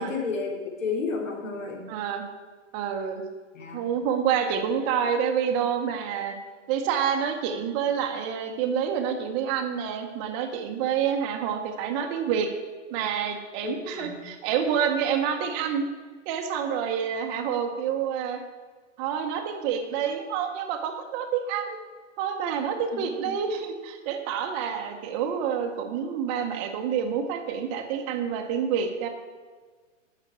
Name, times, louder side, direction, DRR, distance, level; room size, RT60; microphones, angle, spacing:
voice 1, 0.0-1.8 3.5-3.9 13.6-14.2 22.9-23.4, left 4 dB, 85° left, 1 dB, 3.4 m, -32 dB
voice 2, 1.9-2.2 2.7-3.2 3.7-6.3 6.7-12.5 12.9-15.8 16.3-18.4 19.0-21.8 22.2-29.1, right 7 dB, 15° right, 4 dB, 0.8 m, -28 dB
12.0 x 5.8 x 8.5 m, 1.5 s
hypercardioid pair, 165°, 38 cm